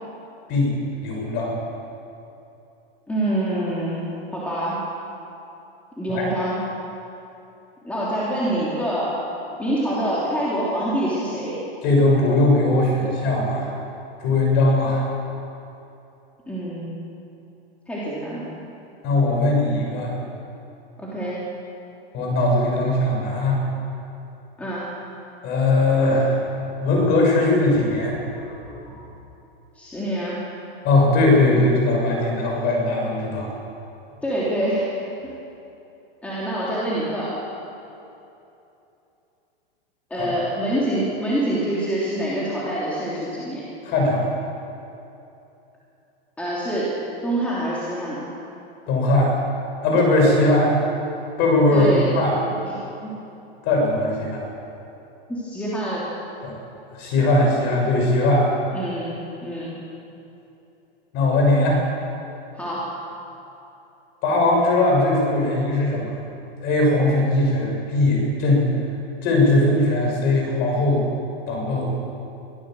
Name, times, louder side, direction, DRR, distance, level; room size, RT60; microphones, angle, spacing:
voice 1, 1.0-1.6 6.1-6.3 11.8-13.7 14.2-15.1 19.0-20.1 22.1-23.6 25.4-26.5 26.8-28.2 28.6-29.0 30.8-33.5 40.2-40.3 43.8-44.3 48.9-49.4 49.8-50.7 51.4-52.3 53.6-54.4 56.4-56.5 57.0-58.5 61.1-61.8 64.2-66.0 66.6-68.7 69.2-71.0 71.5-71.9, left 2 dB, 35° left, 0 dB, 6.8 m, -19 dB
voice 2, 3.1-4.8 6.0-6.6 7.8-9.2 9.6-11.6 16.5-16.9 17.9-18.5 21.0-21.4 24.6-25.0 29.7-30.4 34.2-35.3 36.2-37.3 40.1-43.6 46.4-46.9 47.2-48.3 51.7-52.1 52.7-53.1 55.3-56.0 58.7-59.8 62.6-62.9, right 1 dB, 5° left, -8 dB, 3.2 m, -26 dB
23.5 x 16.0 x 7.8 m, 2.8 s
supercardioid pair, 160°, 30 cm